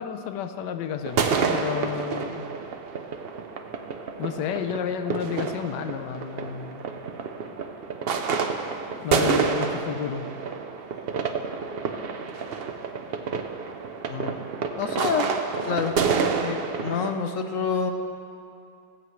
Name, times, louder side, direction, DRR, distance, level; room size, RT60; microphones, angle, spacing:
voice 1, 0.0-2.4 4.2-6.9 9.0-10.3, left 8 dB, 85° left, 8 dB, 1.3 m, -31 dB
sound 1, 1.0-17.1, right 5 dB, 65° right, 0.6 m, -29 dB
voice 2, 14.1-14.5 14.8-15.3 15.6-15.9 16.4-17.9, left 6 dB, 60° left, 6 dB, 1.1 m, -27 dB
20.5 x 8.1 x 3.1 m, 2.6 s
omnidirectional pair, 1.8 m